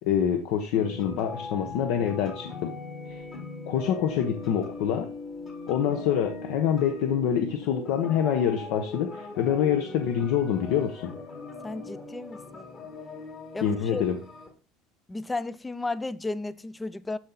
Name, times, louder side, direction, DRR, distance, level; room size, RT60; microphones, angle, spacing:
voice 1, 0.0-2.7 3.1-3.2 3.7-5.1 5.7-11.1 13.6-14.2, left 9 dB, 65° left, 1.0 m, -26 dB
sound 1, 0.8-14.5, left 3 dB, 25° left, 1.6 m, -40 dB
voice 2, 11.6-12.7 13.5-14.0 15.1-17.2, left 3 dB, 10° left, 0.4 m, -33 dB
13.0 x 4.4 x 4.0 m
cardioid pair, 160°, 0 cm